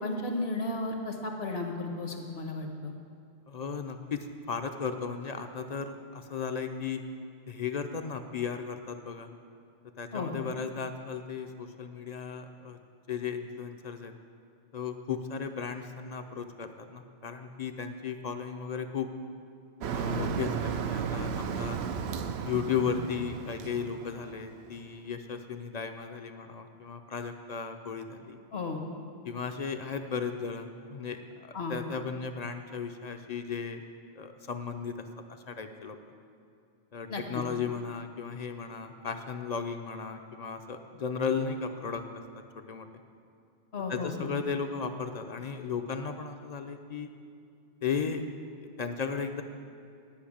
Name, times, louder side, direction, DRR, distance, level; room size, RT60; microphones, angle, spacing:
voice 1, 0.0-2.9 10.1-10.3 20.1-20.2 28.5-28.8 31.5-31.8 37.1-37.4 43.7-44.4, left 2 dB, 75° left, 3 dB, 1.4 m, -34 dB
voice 2, 3.5-7.0 7.5-9.3 10.0-12.8 13.1-14.1 14.7-19.1 19.9-21.8 22.4-28.4 29.2-33.8 34.2-35.1 35.5-36.0 36.9-42.0 42.4-42.9 43.9-47.1 47.8-48.3 48.6-49.4, left 6 dB, 45° left, 7 dB, 0.6 m, -35 dB
Motor vehicle (road), 19.8-24.8, right 7 dB, 80° right, 0.9 m, -34 dB
10.5 x 5.5 x 8.5 m, 2.5 s
omnidirectional pair, 1.1 m